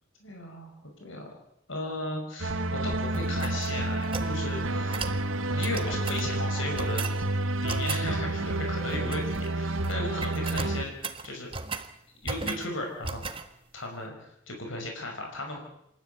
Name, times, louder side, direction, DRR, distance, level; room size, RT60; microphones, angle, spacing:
voice 1, 0.2-0.7 1.0-1.3 1.7-5.0 5.5-7.1 7.6-10.9 11.2-11.5 12.2-13.2 13.7-15.6, left 2 dB, 70° left, 2 dB, 5.8 m, -36 dB
sound 1, 2.4-10.9, right 2 dB, 80° right, 1.7 m, -29 dB
sound 2, 3.1-4.4 4.9-5.2 5.6-6.3 6.8-7.2 7.7-8.1 8.9-9.5 9.7-10.0 10.2-11.9 12.2-12.7 13.0-13.5, right 4 dB, 25° right, 1.5 m, -36 dB
28.0 x 13.5 x 9.4 m, 0.76 s
head